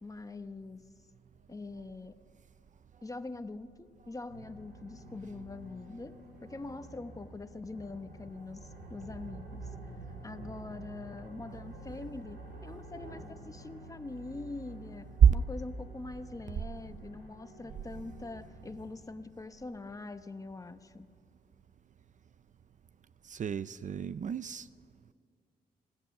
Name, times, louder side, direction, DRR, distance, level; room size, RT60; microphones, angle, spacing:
voice 1, 0.0-0.8 1.5-2.1 3.0-6.2 6.4-9.7 10.2-21.1, left 3 dB, 20° left, 1.0 m, -43 dB
sound 1, 4.3-18.9, right 2 dB, 90° right, 4.7 m, -49 dB
voice 2, 23.3-24.7, right 8 dB, 50° right, 0.5 m, -25 dB
26.5 x 18.5 x 6.6 m
cardioid pair, 110°, 17 cm